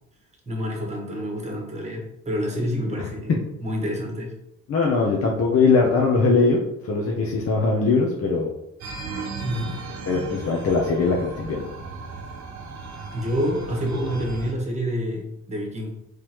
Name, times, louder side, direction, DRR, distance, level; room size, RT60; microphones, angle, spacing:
voice 1, 0.5-4.3 9.1-9.8 13.1-15.9, equal, 20° right, 0 dB, 1.2 m, -28 dB
voice 2, 2.7-3.4 4.7-8.5 10.1-11.7, left 4 dB, 50° left, -2 dB, 0.7 m, -21 dB
sound 1, 8.8-14.5, right 4 dB, 65° right, 0.8 m, -36 dB
3.7 x 3.2 x 3.0 m, 0.83 s
cardioid pair, 90°, 30 cm